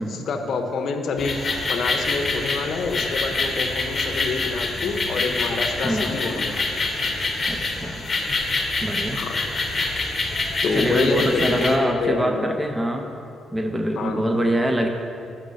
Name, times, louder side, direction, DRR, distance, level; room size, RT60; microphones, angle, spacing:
voice 1, 0.0-6.7 9.1-9.4 10.6-12.6 14.0-14.2, left 4 dB, 60° left, 4 dB, 0.7 m, -27 dB
sound 1, 1.2-11.8, left 3 dB, 35° left, 0.9 m, -26 dB
voice 2, 5.8-6.1 7.5-8.0 8.8-9.2 10.5-13.2 13.5-14.9, right 1 dB, 15° right, 4 dB, 0.6 m, -24 dB
6.8 x 4.4 x 6.4 m, 2.6 s
cardioid pair, 90°, 0 cm